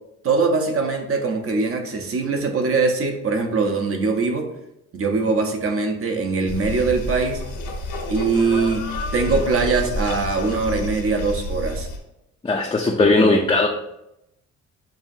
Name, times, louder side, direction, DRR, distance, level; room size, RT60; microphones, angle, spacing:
voice 1, 0.2-4.5 4.9-7.4 8.1-8.9 9.1-11.9 13.0-13.4, right 4 dB, 50° right, 4 dB, 0.9 m, -22 dB
sound 1, 6.5-12.0, left 1 dB, 85° left, 1.1 m, -29 dB
voice 2, 12.4-13.7, left 3 dB, 15° left, 0 dB, 0.4 m, -18 dB
7.0 x 2.5 x 2.7 m, 0.85 s
cardioid pair, 90°, 30 cm